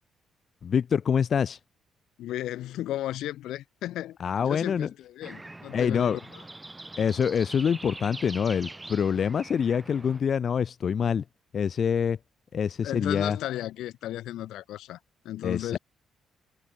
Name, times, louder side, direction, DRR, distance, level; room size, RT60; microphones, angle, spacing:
voice 1, 0.6-1.6 4.2-4.9 5.7-6.2 7.0-11.2 11.5-12.2 12.5-13.4 15.4-15.8, left 7 dB, 50° left, 0.3 m, -26 dB
voice 2, 2.2-6.4 12.8-15.0 15.2-15.8, left 14 dB, 85° left, 1.9 m, -34 dB
sound 1, 5.2-10.2, right 2 dB, 15° right, 0.9 m, -44 dB
cardioid pair, 90°, 0 cm